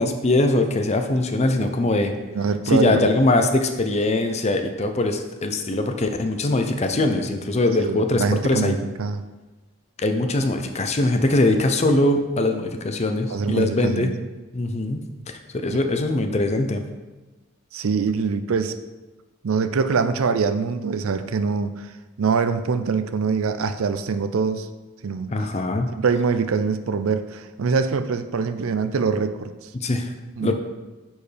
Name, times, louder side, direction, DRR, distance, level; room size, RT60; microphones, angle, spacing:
voice 1, 0.0-2.1 2.7-8.8 10.0-14.1 14.5-16.8 25.3-25.9 29.7-30.1 30.4-30.5, left 2 dB, 30° left, 6 dB, 0.5 m, -22 dB
voice 2, 2.3-3.1 7.8-9.2 13.3-14.1 17.7-18.7 19.4-21.9 22.2-24.7 25.0-25.3 26.0-29.7 30.4-30.5, right 5 dB, 75° right, 10 dB, 0.4 m, -24 dB
9.9 x 4.5 x 3.3 m, 1.2 s
head